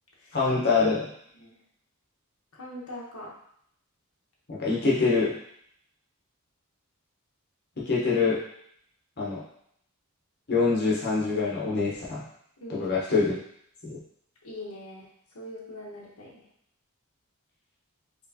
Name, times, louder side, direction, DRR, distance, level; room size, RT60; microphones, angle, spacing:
voice 1, 0.3-1.1 4.5-5.3 7.9-8.4 9.2-9.4 10.5-12.2 12.7-13.4 13.8-13.9, left 4 dB, 50° left, -6 dB, 0.9 m, -24 dB
voice 2, 2.5-3.3 12.6-12.9 14.4-15.1 15.3-16.4, left 1 dB, 80° left, -3 dB, 1.0 m, -41 dB
4.4 x 3.1 x 2.8 m, 0.68 s
head